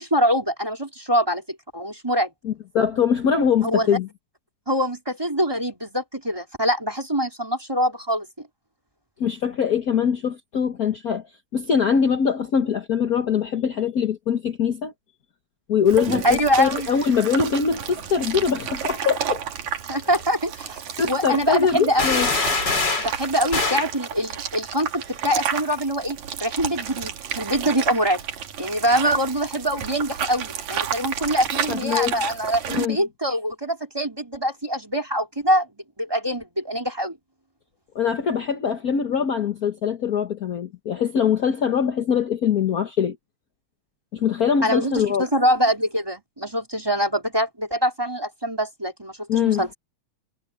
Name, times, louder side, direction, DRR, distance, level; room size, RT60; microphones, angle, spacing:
voice 1, 0.0-1.4 1.7-2.3 3.6-4.0 4.7-8.5 16.2-16.9 19.9-20.8 21.1-22.3 23.0-28.2 28.6-35.7 36.0-37.2 44.6-49.7, equal, 10° right, 3.9 m, -24 dB
voice 2, 2.4-4.1 9.2-11.2 11.5-14.9 15.7-19.4 21.0-22.3 31.7-32.1 32.7-33.0 37.9-43.2 44.1-45.2 49.3-49.7, left 7 dB, 55° left, 1.0 m, -22 dB
sound 1, 15.9-32.9, right 8 dB, 75° right, 3.2 m, -31 dB
sound 2, 22.0-23.1 23.5-23.9, left 3 dB, 35° left, 4.3 m, -23 dB
omnidirectional pair, 3.4 m